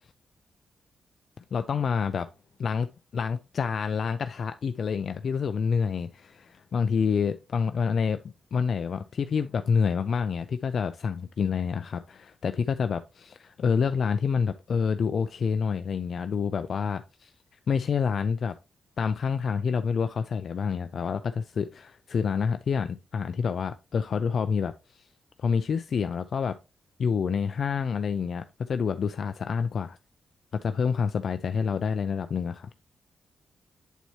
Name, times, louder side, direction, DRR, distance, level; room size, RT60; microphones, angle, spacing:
voice 1, 1.5-2.3 2.6-8.2 8.5-17.3 17.7-18.5 19.0-25.0 25.4-26.6 27.0-30.0 30.6-32.7, left 6 dB, 60° left, 0.4 m, -28 dB
9.1 x 4.2 x 3.1 m
cardioid pair, 110°, 0 cm